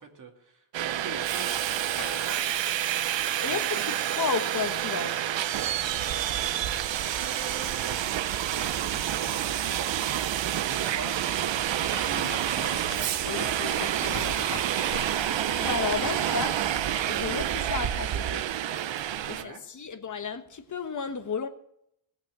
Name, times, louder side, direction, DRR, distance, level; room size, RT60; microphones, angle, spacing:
voice 1, 0.0-2.7 3.4-4.0 7.1-8.0 8.5-13.0 19.2-19.6, right 4 dB, 35° right, 2.5 m, -44 dB
Subway metro underground, 0.7-19.4, right 11 dB, 60° right, 0.8 m, -28 dB
sound 1, 2.0-6.1, left 7 dB, 65° left, 2.3 m, -51 dB
voice 2, 3.4-5.3 13.2-14.4 15.6-16.6 17.1-18.5 19.0-21.5, left 6 dB, 35° left, 1.3 m, -33 dB
sound 2, 11.5-17.8, left 7 dB, 80° left, 1.5 m, -42 dB
17.5 x 6.1 x 9.1 m
wide cardioid pair, 140°, 50 cm